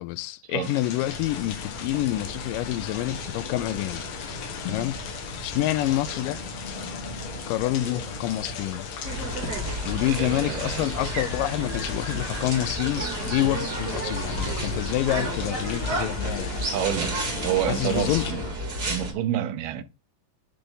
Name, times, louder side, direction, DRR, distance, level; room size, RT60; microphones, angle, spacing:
voice 1, 0.0-4.1 4.7-5.0 5.4-6.4 7.5-8.9 9.9-16.5 17.7-18.3, left 15 dB, 85° left, 2.2 m, -27 dB
sound 1, 0.6-18.3, left 7 dB, 65° left, 2.5 m, -38 dB
sound 2, 1.0-18.5, left 1 dB, 45° left, 0.6 m, -39 dB
sound 3, 9.0-19.1, right 1 dB, 30° right, 2.6 m, -31 dB
voice 2, 10.1-10.9 16.0-16.1 16.7-18.4 18.9-19.8, right 10 dB, 80° right, 2.3 m, -29 dB
10.0 x 3.4 x 3.9 m
omnidirectional pair, 3.9 m